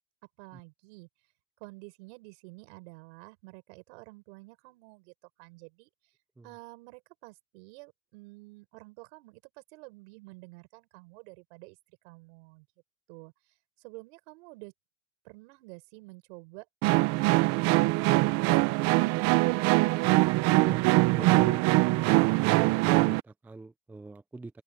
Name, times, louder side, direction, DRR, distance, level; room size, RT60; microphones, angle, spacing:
voice 1, 0.4-1.1 1.6-5.1 5.4-5.9 6.4-12.7 13.1-13.3 13.8-14.7 15.2-16.7, right 28 dB, 70° right, 7.0 m, -49 dB
sound 1, 16.8-23.2, right 22 dB, 55° right, 0.8 m, -23 dB
voice 2, 21.1-21.6 22.2-24.6, right 3 dB, 5° right, 0.4 m, -43 dB
open air
supercardioid pair, 140°, 33 cm